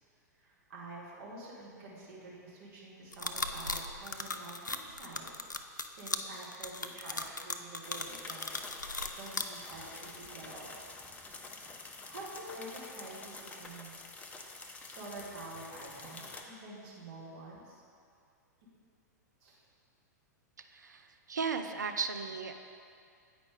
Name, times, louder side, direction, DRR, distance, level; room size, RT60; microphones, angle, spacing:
voice 1, 0.4-5.3 6.0-8.4 9.2-10.7 11.1-11.3 11.6-14.0 14.9-17.8 19.4-19.6, right 2 dB, 50° right, -5 dB, 1.7 m, -48 dB
sound 1, 3.1-9.4, left 3 dB, 90° left, 0.4 m, -37 dB
sound 2, 7.8-16.4, left 3 dB, 15° left, 0.5 m, -48 dB
voice 2, 20.6-22.6, right 5 dB, 75° right, 6 dB, 0.5 m, -36 dB
8.5 x 4.9 x 3.6 m, 2.4 s
figure-of-eight pair, 100°, 10 cm